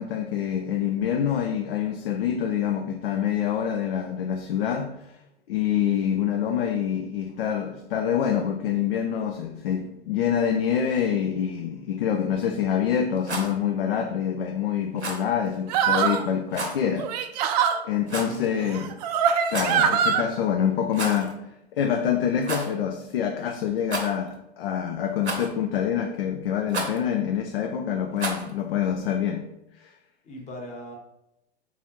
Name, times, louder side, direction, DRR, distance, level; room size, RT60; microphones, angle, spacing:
voice 1, 0.0-5.0 5.5-17.1 17.8-18.9 19.5-21.4 21.7-29.5 29.8-29.9, left 8 dB, 60° left, 0.5 m, -26 dB
Rattle, 13.1-13.5 15.0-15.3 16.5-16.8 18.1-18.5 19.4-19.8 20.9-21.3 21.6-21.7 22.4-22.7 23.8-24.3 25.2-25.7 26.7-27.0 28.2-28.5, right 2 dB, 90° right, 1.0 m, -31 dB
sound 1, 15.7-16.3 17.0-17.8 18.7-20.2, right 7 dB, 40° right, 0.4 m, -23 dB
voice 2, 18.2-18.9 30.2-30.9, left 1 dB, 20° left, 1.1 m, -39 dB
4.0 x 3.7 x 3.0 m
figure-of-eight pair, 105°, 33 cm